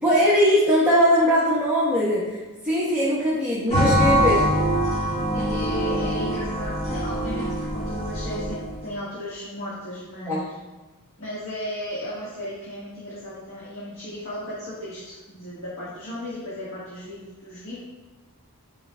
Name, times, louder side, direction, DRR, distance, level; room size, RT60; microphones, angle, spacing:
voice 1, 0.0-2.4 2.6-4.5 10.3-10.4, equal, 5° right, -9 dB, 1.1 m, -20 dB
sound 1, 3.7-8.8, equal, 30° left, 1.6 m, -24 dB
voice 2, 5.3-10.5 11.2-17.8, left 1 dB, 60° left, -8 dB, 1.5 m, -35 dB
10.5 x 4.6 x 2.2 m, 1.2 s
head